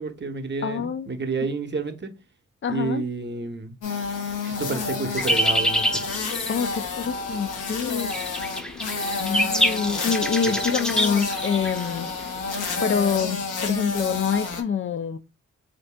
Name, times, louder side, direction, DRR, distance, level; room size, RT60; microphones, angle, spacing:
voice 1, 0.0-2.1 2.7-3.7 4.4-6.0 10.5-10.7, right 4 dB, 35° right, 0.8 m, -30 dB
voice 2, 0.6-1.1 2.6-3.0 6.5-8.1 9.2-12.1 12.8-15.2, left 6 dB, 40° left, 0.4 m, -26 dB
sound 1, 3.8-14.6, left 4 dB, 85° left, 0.8 m, -30 dB
sound 2, 5.2-12.8, equal, ahead, 0.6 m, -27 dB
3.4 x 2.6 x 3.2 m
supercardioid pair, 45°, 30 cm